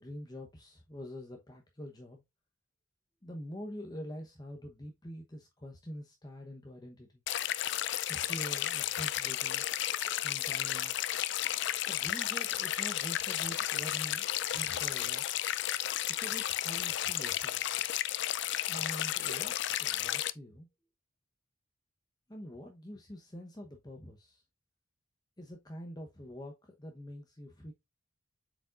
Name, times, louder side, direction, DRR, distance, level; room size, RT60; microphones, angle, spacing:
voice 1, 0.0-2.2 3.2-7.2 8.1-9.7 10.2-11.0 11.9-15.2 16.1-17.6 18.7-20.7 22.3-24.4 25.4-27.7, equal, 20° left, 0.9 m, -45 dB
sound 1, 7.3-20.3, left 12 dB, 55° left, 0.4 m, -33 dB
7.6 x 5.0 x 2.5 m
head